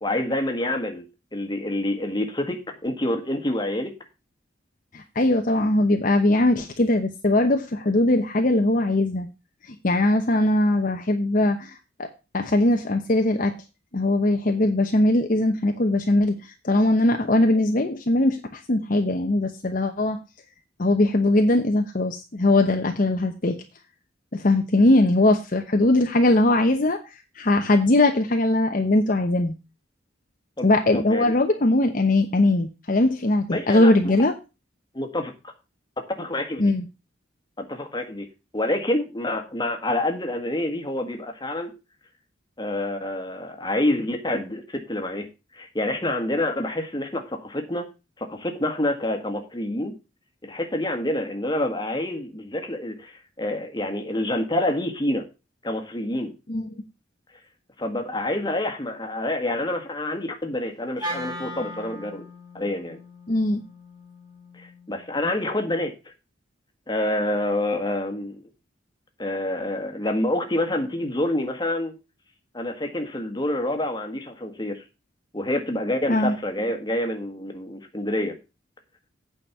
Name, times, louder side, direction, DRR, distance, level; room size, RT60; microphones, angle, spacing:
voice 1, 0.0-1.0 1.3-3.9 30.6-31.3 33.5-34.1 34.9-35.5 36.2-36.7 37.6-38.3 38.5-41.7 42.6-45.3 45.5-47.9 48.2-49.9 50.4-53.1 53.4-55.3 55.6-56.3 57.8-62.2 62.5-63.0 64.6-65.9 66.9-68.4 69.2-71.9 72.5-74.8 75.3-78.4, left 1 dB, 25° left, 4 dB, 1.7 m, -27 dB
voice 2, 4.9-9.3 9.7-12.1 12.3-13.5 13.9-20.2 20.8-23.6 24.3-27.0 27.4-29.5 30.6-34.3 36.6-36.8 56.5-56.6 63.3-63.6 76.1-76.3, left 2 dB, 45° left, 4 dB, 0.9 m, -20 dB
Wind instrument woodwind instrument, 61.0-65.3, equal, 25° right, 2.4 m, -38 dB
8.8 x 5.3 x 6.7 m, 0.29 s
head